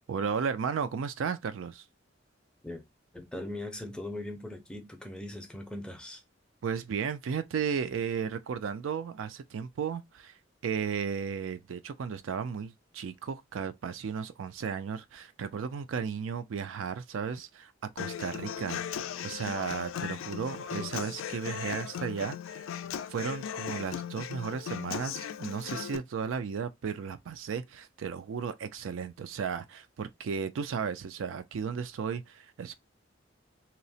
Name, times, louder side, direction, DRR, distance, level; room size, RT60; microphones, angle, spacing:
voice 1, 0.1-1.8 6.6-10.3 10.6-22.6 23.1-32.7, right 6 dB, 80° right, 0.4 m, -34 dB
voice 2, 3.1-6.2 20.8-20.9, left 1 dB, 5° left, 0.5 m, -40 dB
Human voice / Acoustic guitar, 18.0-26.0, left 8 dB, 85° left, 0.3 m, -37 dB
2.9 x 2.0 x 2.7 m
head